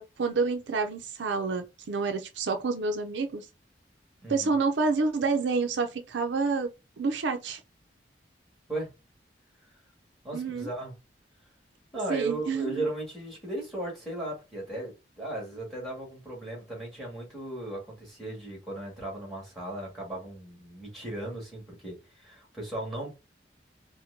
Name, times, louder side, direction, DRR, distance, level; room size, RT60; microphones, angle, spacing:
voice 1, 0.0-3.5 4.3-6.7 7.0-7.6 10.3-10.7 12.1-12.8, right 4 dB, 85° right, 0.5 m, -28 dB
voice 2, 4.2-4.5 8.7-8.9 10.2-11.0 11.9-23.1, right 2 dB, ahead, 1.8 m, -36 dB
4.3 x 2.1 x 2.6 m
head